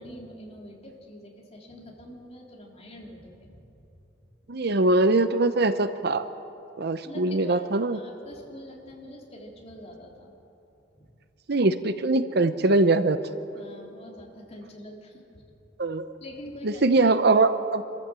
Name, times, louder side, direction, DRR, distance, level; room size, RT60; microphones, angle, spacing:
voice 1, 0.0-3.6 7.0-7.7 7.9-10.3 11.0-11.1 13.5-15.2 16.2-17.1, left 1 dB, 35° left, -1 dB, 3.3 m, -45 dB
voice 2, 4.5-6.2 6.8-8.0 11.5-13.2 15.8-16.1 16.6-17.8, right 2 dB, 60° right, 11 dB, 0.8 m, -22 dB
26.5 x 13.5 x 7.6 m, 2.9 s
head